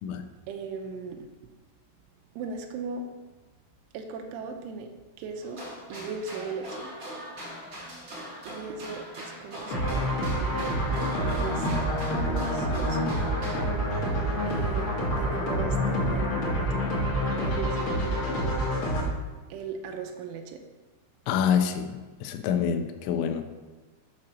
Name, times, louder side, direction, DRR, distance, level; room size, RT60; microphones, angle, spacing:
voice 1, 0.4-1.3 2.4-3.1 3.9-4.9 5.2-5.6 5.9-6.9 8.4-13.1 14.4-14.9 15.2-16.9 17.3-18.6 19.5-20.6, right 5 dB, 85° right, 3 dB, 3.1 m, -38 dB
sound 1, 5.4-13.6, equal, 50° right, 1.3 m, -41 dB
sound 2, 9.7-19.0, equal, 60° left, 1.4 m, -27 dB
voice 2, 21.3-21.9 22.2-23.4, left 8 dB, 80° left, 7 dB, 2.8 m, -26 dB
7.6 x 4.2 x 6.2 m, 1.2 s
omnidirectional pair, 5.6 m